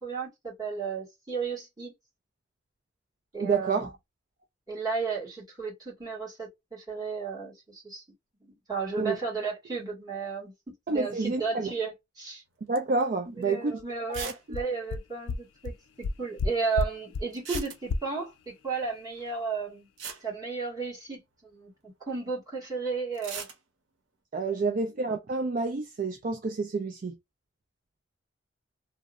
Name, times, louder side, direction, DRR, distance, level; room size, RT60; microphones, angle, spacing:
voice 1, 0.0-1.9 3.3-3.9 4.7-8.0 8.4-10.5 10.9-12.4 13.3-19.9 20.2-21.7 22.1-23.5 24.5-24.8, right 5 dB, 20° right, 1.6 m, -34 dB
voice 2, 3.4-3.9 8.9-9.2 10.9-11.7 12.7-13.8 14.2-14.3 24.3-27.2, right 3 dB, 45° right, 0.4 m, -29 dB
sound 1, 12.8-13.0 13.4-13.5 14.1-14.5 14.7-14.8 15.0-15.1 17.3-18.2 19.6-19.7 20.0-21.2 23.1-23.6, right 6 dB, 80° right, 0.8 m, -39 dB
sound 2, 13.8-13.9 14.2-14.3 14.5-14.6 14.9-15.0 15.3-15.4 15.7-15.8 16.0-16.5 16.8-16.9 17.1-17.2 17.5-17.6 17.9-18.0, left 4 dB, 85° left, 0.3 m, -29 dB
2.8 x 2.0 x 2.4 m
head